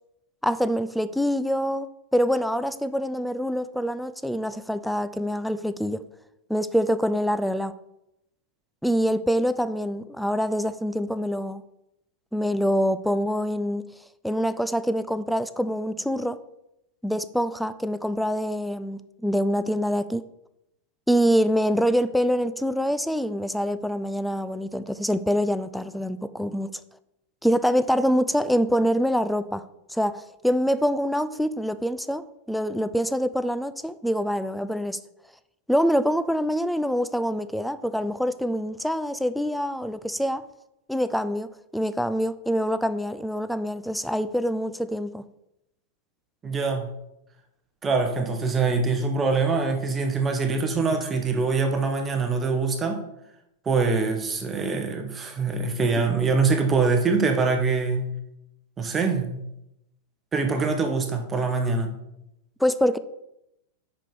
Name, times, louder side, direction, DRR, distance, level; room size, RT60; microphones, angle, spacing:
voice 1, 0.4-1.9 2.1-6.0 6.5-7.7 8.8-11.6 12.3-13.8 14.2-16.4 17.0-20.2 21.1-26.8 27.4-29.6 29.9-35.0 35.7-40.4 40.9-41.5 41.7-45.2 56.0-56.1 62.6-63.0, equal, ahead, 13 dB, 0.4 m, -25 dB
voice 2, 46.4-46.9 47.8-53.0 53.7-58.1 58.8-59.4 60.3-61.9, right 4 dB, 20° right, 4 dB, 1.1 m, -24 dB
5.3 x 5.0 x 5.9 m, 0.85 s
hypercardioid pair, 130°, 0 cm